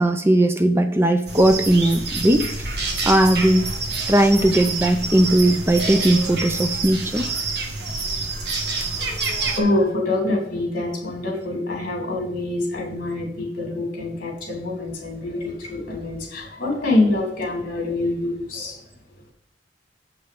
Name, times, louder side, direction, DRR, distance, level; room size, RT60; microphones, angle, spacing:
voice 1, 0.0-2.4 3.0-3.7 4.1-7.3, right 1 dB, 15° right, 8 dB, 0.4 m, -18 dB
sound 1, 1.3-9.6, right 3 dB, 65° right, 1.5 m, -27 dB
voice 2, 9.0-18.8, left 2 dB, 50° left, 0 dB, 3.0 m, -25 dB
7.7 x 5.6 x 5.1 m, 0.73 s
head